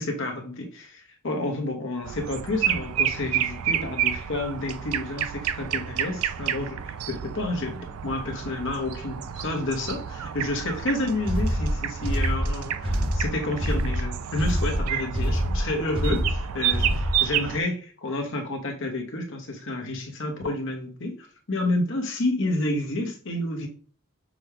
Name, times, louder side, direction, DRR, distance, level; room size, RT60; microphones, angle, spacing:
voice 1, 0.0-23.7, left 2 dB, 60° left, 1.0 m, -30 dB
sound 1, 2.0-17.6, right 10 dB, 80° right, 0.3 m, -30 dB
sound 2, 11.2-17.3, equal, 25° right, 0.8 m, -26 dB
6.0 x 2.3 x 3.5 m
head